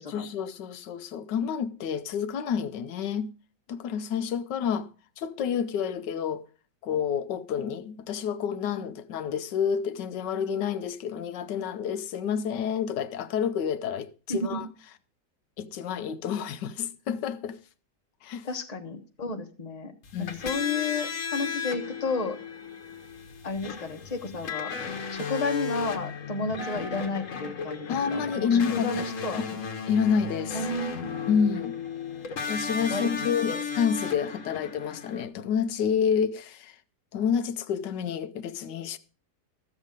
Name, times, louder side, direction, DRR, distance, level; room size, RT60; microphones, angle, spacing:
voice 1, 0.0-3.3 3.7-4.9 5.2-6.5 6.8-14.7 15.6-17.6 18.2-18.5 20.1-20.5 27.9-29.6 29.9-30.7 31.3-31.8 32.5-36.8 37.1-39.0, left 7 dB, 85° left, 1.4 m, -29 dB
voice 2, 14.3-14.6 18.4-19.9 20.2-22.4 23.4-24.7 25.1-29.4 30.5-31.1 32.9-33.1 33.5-33.6, left 3 dB, 25° left, 1.2 m, -32 dB
sound 1, 20.0-35.2, left 6 dB, 50° left, 1.5 m, -35 dB
14.0 x 7.3 x 5.1 m
omnidirectional pair, 1.8 m